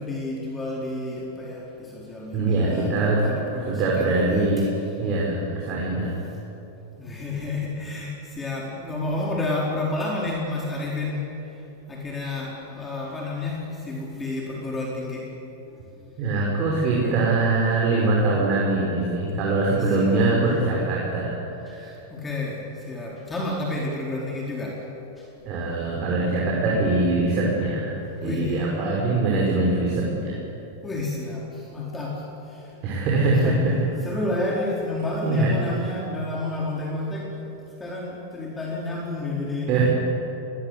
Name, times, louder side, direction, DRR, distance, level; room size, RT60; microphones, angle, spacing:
voice 1, 0.0-4.5 7.0-15.3 15.9-16.1 16.9-17.2 19.7-20.2 21.7-24.8 25.2-25.3 28.2-28.7 30.8-32.8 33.4-33.6 34.0-37.5 37.8-39.9, left 2 dB, 15° left, -4 dB, 4.4 m, -30 dB
voice 2, 2.3-4.7 5.0-6.2 16.2-21.4 21.7-21.9 25.4-30.4 32.8-33.7 35.2-35.6 39.7-39.9, right 2 dB, 45° right, -3 dB, 5.7 m, -23 dB
21.5 x 20.5 x 8.4 m, 3.0 s
hypercardioid pair, 105°, 0 cm